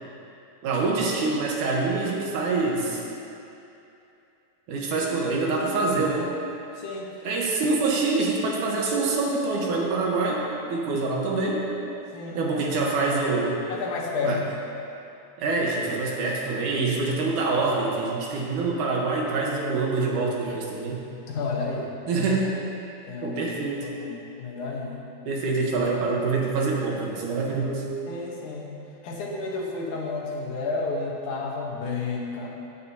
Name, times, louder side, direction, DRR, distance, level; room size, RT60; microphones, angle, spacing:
voice 1, 0.6-3.0 4.7-6.3 7.2-11.7 12.3-13.6 14.2-14.4 15.4-21.0 22.1-22.6 23.2-23.9 25.3-27.9, right 3 dB, 80° right, -2 dB, 2.7 m, -25 dB
voice 2, 6.7-7.2 12.1-12.5 13.7-14.4 21.3-22.2 23.1-23.4 23.8-25.1 28.1-28.8 29.0-32.5, left 3 dB, 75° left, -2 dB, 2.6 m, -31 dB
15.5 x 9.2 x 2.8 m, 2.7 s
omnidirectional pair, 3.6 m